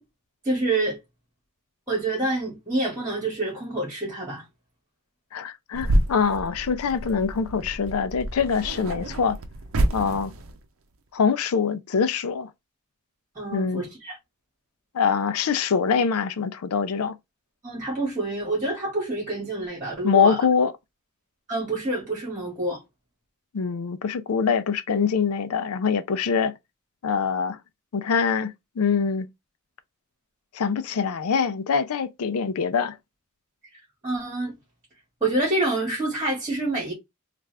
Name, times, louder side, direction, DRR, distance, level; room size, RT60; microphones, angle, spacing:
voice 1, 0.4-1.0 1.9-4.4 13.3-14.2 17.6-20.4 21.5-22.8 34.0-34.5 35.2-36.9, right 2 dB, 15° right, 1.5 m, -27 dB
voice 2, 5.3-9.4 9.9-10.3 11.1-12.5 13.5-13.8 14.9-17.2 20.0-20.7 23.5-26.5 27.0-27.6 27.9-29.3 30.5-33.0, left 6 dB, 90° left, 0.4 m, -24 dB
sound 1, 5.7-10.6, right 1 dB, 70° right, 0.6 m, -28 dB
3.3 x 2.4 x 3.2 m
head